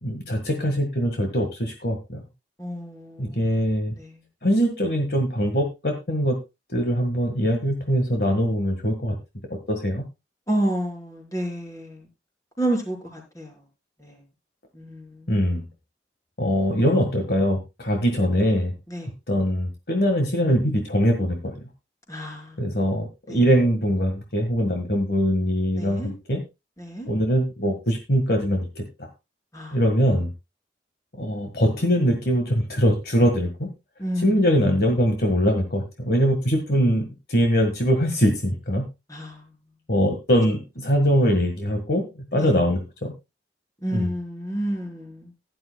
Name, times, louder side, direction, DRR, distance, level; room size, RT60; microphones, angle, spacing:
voice 1, 0.0-2.2 3.2-3.9 4.4-6.4 6.7-9.2 9.5-10.0 15.3-15.6 16.4-18.7 19.3-21.6 22.6-26.4 27.1-29.1 29.7-30.3 31.2-33.7 34.2-38.8 39.9-43.1 43.9-44.1, equal, 55° left, 1.7 m, -22 dB
voice 2, 2.6-3.4 4.0-4.1 10.5-12.1 12.6-13.5 14.0-14.2 14.7-15.4 18.9-19.1 22.1-22.6 23.3-23.4 25.7-26.1 26.8-27.1 29.5-29.8 34.0-34.4 39.1-39.4 42.4-42.5 43.8-45.3, right 1 dB, 20° left, 4.4 m, -30 dB
16.0 x 11.0 x 2.3 m
head